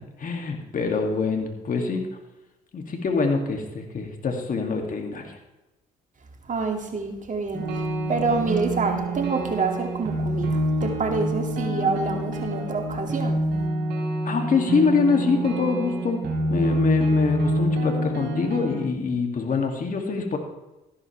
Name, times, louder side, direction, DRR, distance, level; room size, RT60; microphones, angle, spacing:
voice 1, 0.2-2.1 2.7-5.4 14.2-16.2 16.5-20.4, left 5 dB, 50° left, 2 dB, 2.7 m, -25 dB
voice 2, 6.5-7.8 8.1-13.4, right 4 dB, 45° right, 4 dB, 2.6 m, -27 dB
sound 1, 7.5-18.8, right 1 dB, 65° right, 4.0 m, -26 dB
14.0 x 12.0 x 3.5 m, 1.0 s
hypercardioid pair, 55°, 18 cm